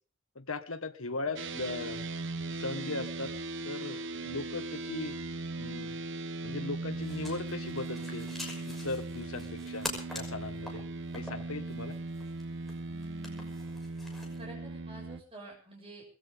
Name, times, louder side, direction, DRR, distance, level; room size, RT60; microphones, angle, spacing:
voice 1, 0.3-2.0 2.5-3.3 3.6-5.2 5.6-6.0 6.4-8.3 8.7-10.8 11.1-11.9, left 3 dB, 80° left, 9 dB, 1.6 m, -38 dB
sound 1, 1.4-15.2, right 3 dB, 60° right, 1.0 m, -39 dB
sound 2, 6.9-14.5, left 1 dB, ahead, 6.0 m, -46 dB
voice 2, 12.9-13.5 14.4-16.0, right 1 dB, 25° right, -1 dB, 7.2 m, -49 dB
22.0 x 16.5 x 3.7 m, 0.39 s
head